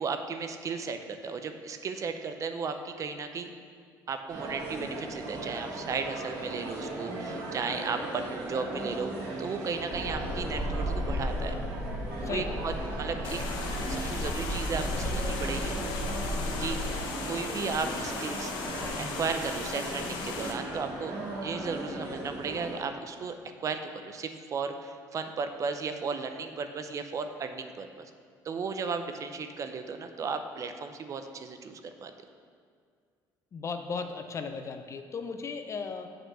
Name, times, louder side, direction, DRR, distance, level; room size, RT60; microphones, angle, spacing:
voice 1, 0.0-3.5 4.1-9.1 9.4-11.6 12.3-13.4 13.9-15.8 16.6-16.8 17.3-18.5 19.0-21.2 21.4-28.1 28.4-32.1, right 5 dB, 45° right, 7 dB, 0.5 m, -35 dB
sound 1, 4.3-22.8, right 2 dB, 85° right, 1.8 m, -38 dB
sound 2, 9.9-17.0, left 1 dB, 5° left, 0.7 m, -34 dB
voice 2, 12.2-12.6 33.5-36.2, left 5 dB, 40° left, 7 dB, 0.5 m, -36 dB
sound 3, 13.2-20.5, left 4 dB, 75° left, 0.8 m, -37 dB
6.7 x 4.4 x 6.1 m, 2.1 s
cardioid pair, 100°, 8 cm